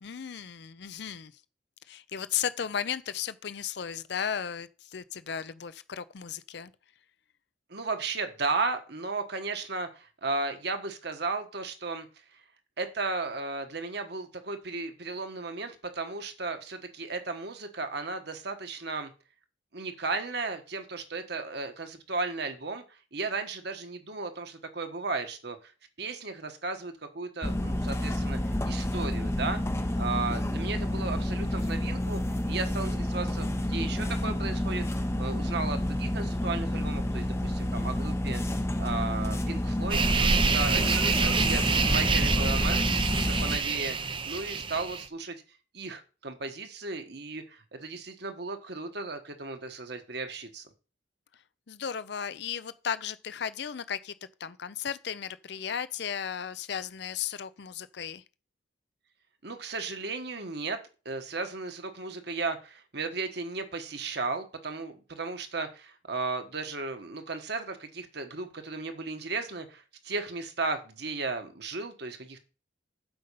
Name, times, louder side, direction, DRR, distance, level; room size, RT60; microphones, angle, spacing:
voice 1, 0.0-1.3 1.9-6.7 41.1-41.3 51.7-54.1 54.4-58.2, left 8 dB, 60° left, 0.5 m, -35 dB
voice 2, 7.7-12.1 12.3-12.4 12.8-19.1 19.7-25.6 26.0-28.4 28.6-29.6 30.0-32.2 32.5-34.8 35.2-38.4 38.8-40.9 41.2-44.0 44.3-45.4 45.7-50.7 59.4-60.8 61.0-72.4, right 3 dB, 55° right, 1.4 m, -35 dB
sound 1, 27.4-43.6, left 1 dB, 15° left, 0.6 m, -29 dB
sound 2, 39.9-45.1, right 5 dB, 25° right, 0.5 m, -27 dB
7.9 x 5.3 x 6.8 m
head